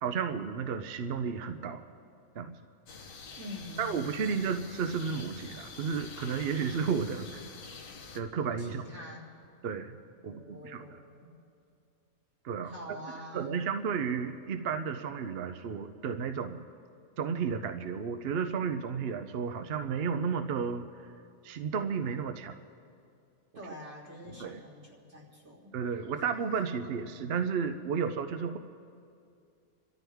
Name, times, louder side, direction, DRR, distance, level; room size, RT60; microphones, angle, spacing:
voice 1, 0.0-1.8 2.3-2.6 3.8-7.4 8.1-8.8 9.6-10.0 10.2-11.0 12.4-12.7 13.3-16.7 17.2-21.1 21.4-22.5 24.4-24.6 25.7-28.6, right 6 dB, 55° right, 7 dB, 0.8 m, -32 dB
sound 1, 2.9-8.2, left 4 dB, 70° left, 1.4 m, -47 dB
voice 2, 3.4-4.5 8.6-9.3 10.2-11.3 12.6-13.6 23.5-25.8, equal, 75° right, -6 dB, 3.8 m, -46 dB
28.5 x 13.0 x 3.5 m, 2.4 s
omnidirectional pair, 1.5 m